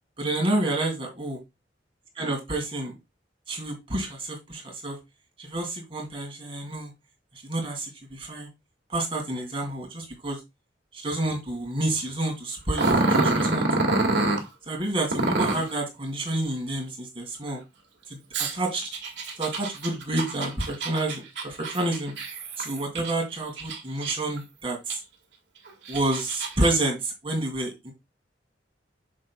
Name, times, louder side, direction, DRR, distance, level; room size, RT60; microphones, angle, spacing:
voice 1, 0.2-1.4 2.2-2.9 3.5-5.0 5.4-6.9 7.5-8.5 8.9-10.4 10.9-13.7 14.7-17.6 18.5-18.9 19.4-22.1 22.6-25.0 25.9-27.9, right 1 dB, 30° right, 1 dB, 2.8 m, -29 dB
Growling, 12.7-14.4 15.1-15.7 18.3-23.1 23.6-24.4 24.9-25.0 25.7-26.7, right 2 dB, 75° right, 1.9 m, -26 dB
7.1 x 6.7 x 2.3 m, 0.22 s
head